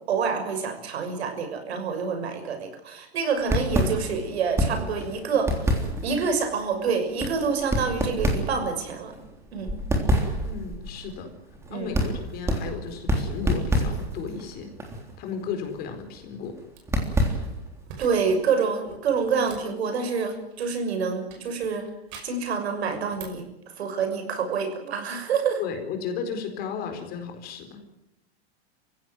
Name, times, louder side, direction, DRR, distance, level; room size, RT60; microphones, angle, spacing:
voice 1, 0.1-5.6 6.0-9.1 9.5-9.8 11.7-11.9 18.0-21.9 22.2-23.4 23.8-25.6, right 5 dB, 85° right, 6 dB, 6.5 m, -27 dB
sound 1, 3.4-17.8, equal, 10° right, 3.4 m, -28 dB
voice 2, 10.4-11.3 11.7-14.7 15.2-16.6 25.6-27.8, left 6 dB, 30° left, 6 dB, 4.4 m, -34 dB
sound 2, 16.7-17.1 17.8-18.4 18.7-20.9 21.3-22.5 22.9-23.5, right 6 dB, 40° right, 5.5 m, -46 dB
26.5 x 16.0 x 9.4 m, 0.89 s
supercardioid pair, 160°, 31 cm